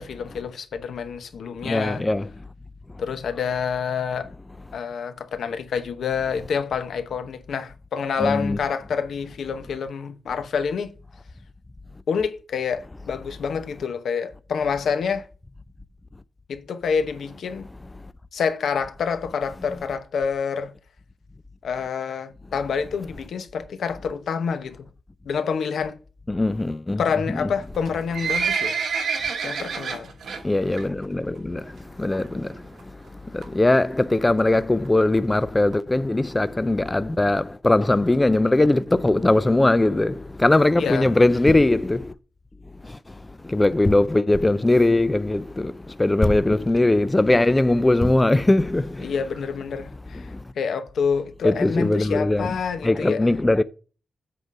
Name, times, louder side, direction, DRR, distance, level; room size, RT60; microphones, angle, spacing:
voice 1, 0.0-2.0 3.0-4.3 4.7-10.9 12.1-15.3 16.5-17.6 18.3-20.7 21.6-24.9 25.3-26.0 27.0-28.8 29.4-30.1 40.8-41.1 49.0-50.3 50.6-53.2, left 6 dB, 85° left, 0.9 m, -27 dB
voice 2, 1.6-2.3 8.2-8.6 26.3-27.0 27.3-27.5 30.4-42.1 42.8-49.1 50.1-50.4 51.4-52.5 52.8-53.6, left 2 dB, 15° left, 0.3 m, -20 dB
Livestock farm animals working animals, 27.7-30.4 30.8-31.0 31.4-31.5 32.1-32.2 32.5-32.6 32.8-32.9 33.4-33.7 34.3-34.4 34.6-34.7 34.8-34.9 35.2-35.3 35.7-35.8 36.3-36.4 36.9-37.0, right 6 dB, 80° right, 1.3 m, -27 dB
7.8 x 3.8 x 6.1 m
wide cardioid pair, 135°, 0 cm